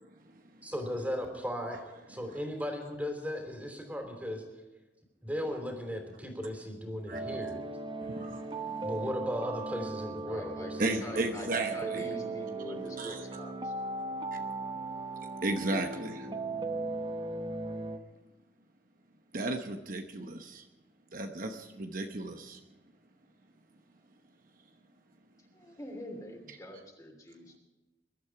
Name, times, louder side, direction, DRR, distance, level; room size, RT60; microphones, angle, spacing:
voice 1, 0.6-1.8 2.1-4.4 5.2-7.6 8.8-11.3, equal, 10° right, 4 dB, 3.3 m, -36 dB
sound 1, 7.1-18.0, right 3 dB, 25° right, 0.9 m, -37 dB
voice 2, 8.0-8.9 10.8-12.1 13.0-13.2 14.3-14.4 15.4-16.3 19.3-20.7 21.1-22.6, right 2 dB, 50° right, 5 dB, 1.0 m, -34 dB
voice 3, 10.2-10.7 11.0-13.7 25.5-27.6, equal, 20° left, 2 dB, 2.9 m, -44 dB
22.0 x 12.0 x 4.8 m, 1.1 s
head